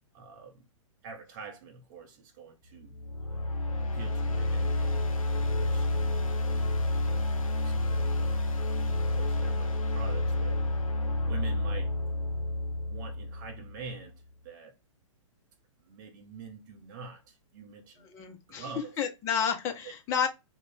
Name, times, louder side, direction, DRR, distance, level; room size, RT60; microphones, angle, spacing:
voice 1, 0.1-0.7 1.0-3.0 3.3-3.4 3.8-5.1 5.6-6.6 7.5-10.6 11.3-11.9 12.9-14.7 15.9-18.1 18.5-19.0 19.8-19.9, right 5 dB, 35° right, 0.6 m, -46 dB
sound 1, 2.9-13.9, left 2 dB, 80° left, 0.5 m, -29 dB
voice 2, 18.1-18.6 19.0-20.3, left 7 dB, 15° left, 0.4 m, -30 dB
2.4 x 2.0 x 3.3 m
figure-of-eight pair, 115°, 17 cm